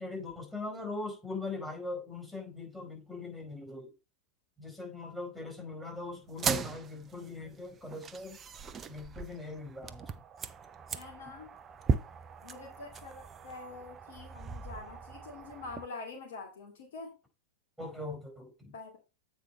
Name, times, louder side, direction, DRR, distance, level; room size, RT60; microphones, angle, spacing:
voice 1, 0.0-3.9 4.6-8.4 8.9-10.2 17.8-18.8, left 2 dB, ahead, 4.5 m, -40 dB
sound 1, 6.3-15.9, right 5 dB, 25° right, 0.5 m, -38 dB
voice 2, 10.9-11.5 12.4-17.1 18.7-19.0, left 3 dB, 60° left, 2.0 m, -45 dB
8.3 x 4.7 x 4.1 m
figure-of-eight pair, 90°, 0 cm